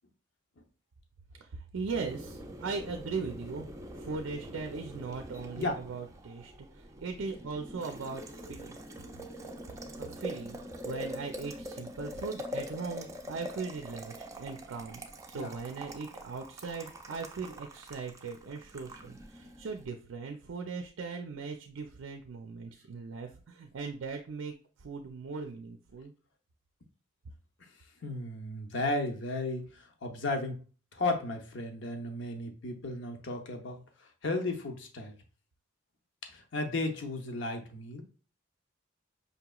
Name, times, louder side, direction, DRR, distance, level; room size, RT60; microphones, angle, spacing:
voice 1, 1.4-3.7 4.0-8.8 10.0-10.6 10.8-15.0 15.3-24.5 24.8-26.1, right 4 dB, 85° right, 4 dB, 0.4 m, -39 dB
Boiling, 1.9-19.9, equal, 15° right, 0.4 m, -44 dB
voice 2, 28.0-30.6 30.9-35.2 36.3-38.0, left 2 dB, 70° left, 4 dB, 0.8 m, -34 dB
5.2 x 2.9 x 2.3 m, 0.38 s
head